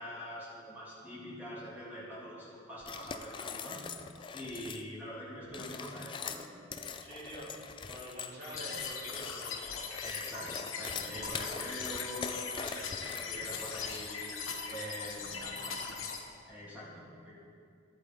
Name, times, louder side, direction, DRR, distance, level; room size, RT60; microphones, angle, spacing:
voice 1, 0.0-3.8 4.3-6.7 10.0-14.3 14.7-15.4 15.9-16.0 16.5-17.3, equal, 10° right, -9 dB, 2.3 m, -44 dB
sound 1, 2.8-4.9 5.4-14.3, left 6 dB, 25° left, 0.3 m, -43 dB
voice 2, 6.9-7.6 7.8-9.6 15.3-15.8, right 1 dB, 55° right, -7 dB, 3.0 m, -46 dB
sound 2, 8.4-16.2, left 5 dB, 85° left, 1.2 m, -40 dB
13.0 x 8.5 x 3.8 m, 2.4 s
head